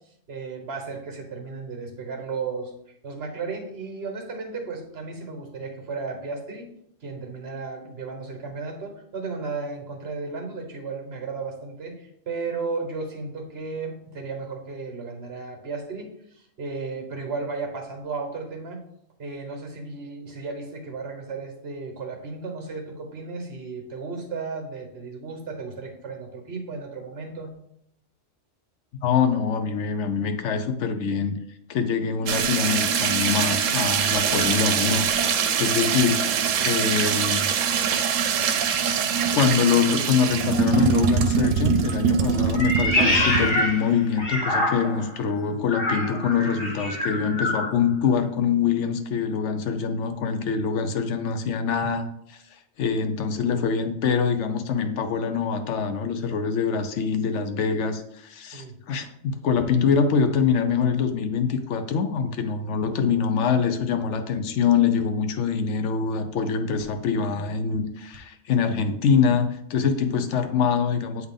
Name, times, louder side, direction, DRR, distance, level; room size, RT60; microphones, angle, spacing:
voice 1, 0.3-2.7 3.0-6.7 7.0-18.8 19.2-27.5 58.5-58.7, right 4 dB, 55° right, 3 dB, 1.4 m, -34 dB
voice 2, 29.0-31.4 31.7-35.1 35.6-36.3 36.6-37.5 39.3-52.4 52.8-71.3, left 6 dB, 70° left, 8 dB, 0.9 m, -24 dB
sound 1, 32.3-43.6, right 7 dB, 90° right, 1.0 m, -23 dB
Meow, 42.5-45.1 45.7-47.7, left 1 dB, 50° left, 1.4 m, -25 dB
8.0 x 3.5 x 3.7 m, 0.73 s
omnidirectional pair, 1.3 m